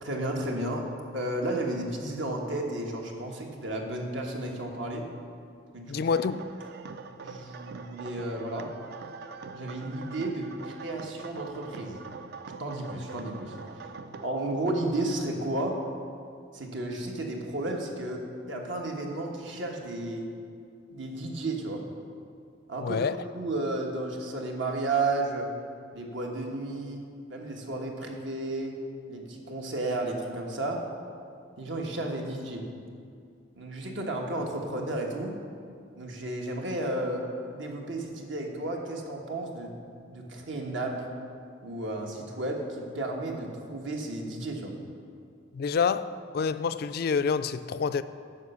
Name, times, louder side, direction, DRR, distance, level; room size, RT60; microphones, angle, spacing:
voice 1, 0.0-0.9 1.1-5.1 5.7-6.0 7.2-8.7 9.5-12.0 12.6-13.6 14.2-15.8 16.5-20.3 20.9-21.8 22.7-23.0 23.3-25.5 25.9-27.0 27.3-28.8 29.1-30.9 31.6-32.7 33.6-35.3 35.9-39.8 40.1-41.1 41.6-44.7, right 2 dB, 75° right, 1.4 m, -33 dB
voice 2, 5.9-6.4 22.8-23.2 45.5-48.0, left 5 dB, 50° left, 0.3 m, -27 dB
sound 1, 6.0-14.3, right 5 dB, 55° right, 0.4 m, -43 dB
9.5 x 5.8 x 6.8 m
head